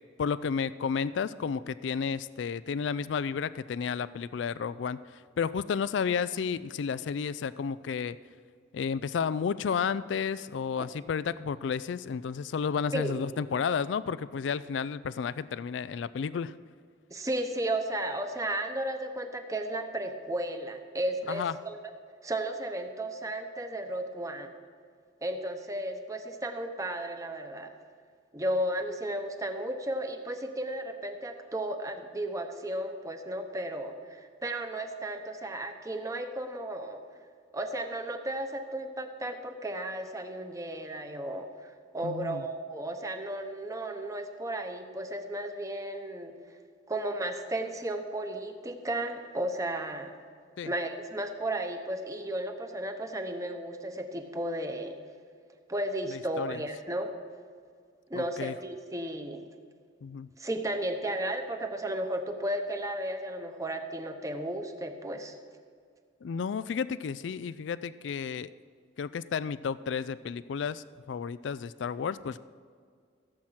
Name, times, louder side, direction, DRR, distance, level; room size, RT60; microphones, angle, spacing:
voice 1, 0.2-8.2 8.7-16.5 21.3-21.5 42.0-42.4 50.6-50.7 56.1-56.6 58.1-58.5 60.0-60.3 66.2-68.5 69.0-72.4, left 6 dB, 75° left, 16 dB, 0.4 m, -32 dB
voice 2, 17.1-21.8 22.2-24.5 25.2-27.7 28.3-37.0 37.5-46.3 46.9-50.1 50.6-55.0 55.7-57.1 58.1-59.5 60.4-65.4, right 1 dB, 15° right, 6 dB, 1.0 m, -34 dB
16.5 x 7.7 x 5.8 m, 2.1 s
head